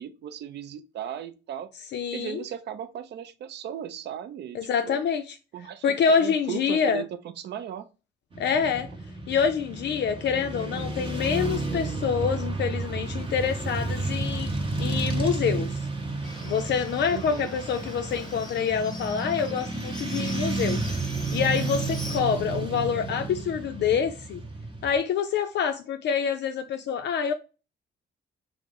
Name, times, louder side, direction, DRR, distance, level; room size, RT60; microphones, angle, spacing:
voice 1, 0.0-1.7 2.1-4.6 4.8-5.0 5.5-7.9 17.1-17.5, right 9 dB, 60° right, 0.4 m, -37 dB
voice 2, 1.9-2.4 4.5-5.4 5.8-7.0 8.4-8.9 9.3-14.5 14.8-15.8 16.4-20.8 21.3-24.4 24.8-27.3, left 7 dB, 60° left, 0.4 m, -26 dB
Motorcycle / Traffic noise roadway noise, 8.3-25.0, right 3 dB, 25° right, 0.8 m, -31 dB
Livestock farm animals working animals, 16.2-22.2, left 2 dB, 20° left, 0.9 m, -43 dB
2.9 x 2.0 x 3.5 m
cardioid pair, 90°, 20 cm